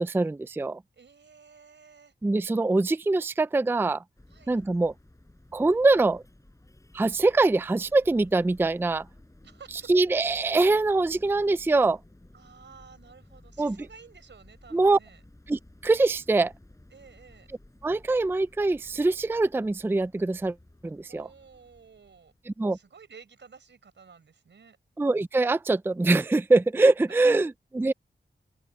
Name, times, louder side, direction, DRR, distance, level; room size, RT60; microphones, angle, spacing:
voice 1, 0.0-0.8 2.2-4.0 4.5-4.9 5.5-6.2 6.9-9.0 9.9-12.0 13.6-13.8 14.7-15.0 15.5-16.5 17.8-20.5 20.8-21.3 22.5-22.8 25.0-27.9, right 2 dB, 10° right, 0.4 m, -23 dB
voice 2, 0.9-2.1 4.3-4.6 9.4-9.9 12.3-15.2 16.9-17.5 21.1-22.3 22.7-24.8 27.1-27.4, right 5 dB, 85° right, 4.9 m, -52 dB
sound 1, 4.2-23.0, left 1 dB, 15° left, 5.9 m, -55 dB
wide cardioid pair, 95°, 18 cm